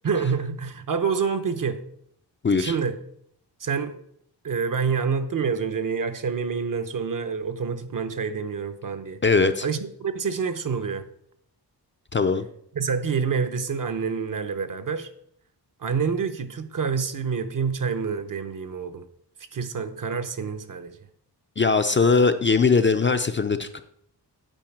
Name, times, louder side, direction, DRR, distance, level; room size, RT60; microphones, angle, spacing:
voice 1, 0.0-1.8 2.6-3.0 3.6-4.0 4.4-9.2 9.6-11.0 12.7-15.1 15.8-19.0 19.5-21.0, right 6 dB, 50° right, 9 dB, 0.8 m, -27 dB
voice 2, 9.2-9.6 12.1-12.4 21.6-23.8, left 4 dB, 30° left, 8 dB, 0.4 m, -20 dB
9.1 x 4.7 x 7.2 m, 0.69 s
wide cardioid pair, 130°, 42 cm